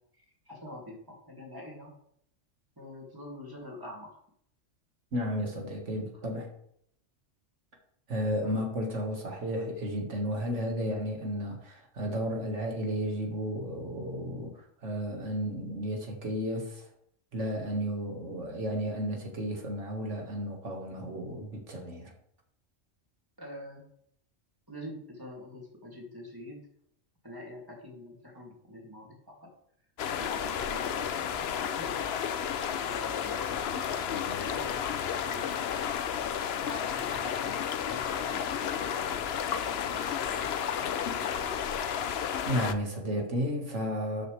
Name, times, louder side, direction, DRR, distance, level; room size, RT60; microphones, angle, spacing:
voice 1, 0.1-1.9 2.8-4.1 8.4-8.7 23.4-23.8 24.7-26.6 27.2-29.5 30.2-32.1 32.6-35.6 36.6-40.5 41.2-41.8, left 1 dB, 15° right, -2 dB, 2.7 m, -45 dB
voice 2, 5.1-6.5 8.1-16.9 17.3-22.1 42.5-44.3, equal, 75° right, 1 dB, 2.2 m, -33 dB
sound 1, 30.0-42.7, left 8 dB, 60° left, 0.8 m, -32 dB
12.0 x 6.7 x 3.4 m, 0.68 s
omnidirectional pair, 1.3 m